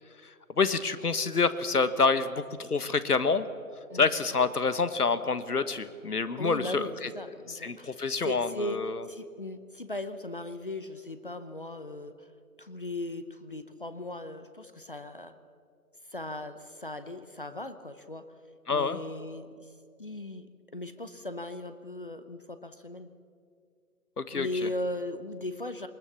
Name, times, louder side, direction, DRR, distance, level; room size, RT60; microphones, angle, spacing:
voice 1, 0.6-3.5 3.9-7.1 7.6-9.0 18.7-19.0 24.2-24.7, left 4 dB, 75° left, 13 dB, 1.4 m, -27 dB
voice 2, 6.4-12.3 12.6-15.3 16.1-18.2 18.7-19.7 20.0-23.1 24.3-25.9, left 2 dB, 35° left, 11 dB, 0.8 m, -38 dB
20.5 x 20.0 x 7.2 m, 2.2 s
figure-of-eight pair, 165°, 45 cm